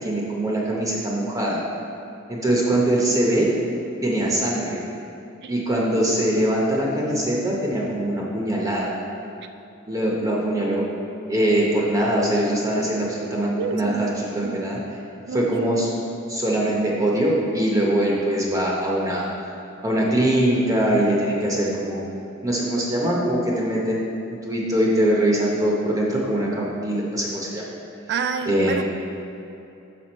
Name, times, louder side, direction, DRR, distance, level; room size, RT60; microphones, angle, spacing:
voice 1, 0.0-1.6 2.3-3.5 4.0-4.8 5.5-8.9 9.9-10.9 11.3-14.8 15.3-15.9 16.3-19.3 19.8-22.0 22.4-27.6 28.5-28.8, right 1 dB, 15° right, -4 dB, 0.7 m, -22 dB
voice 2, 13.6-14.8 15.3-15.9 22.7-22.9 23.1-23.3 28.1-28.8, right 5 dB, 50° right, 8 dB, 0.3 m, -30 dB
6.0 x 5.8 x 4.3 m, 2.8 s
head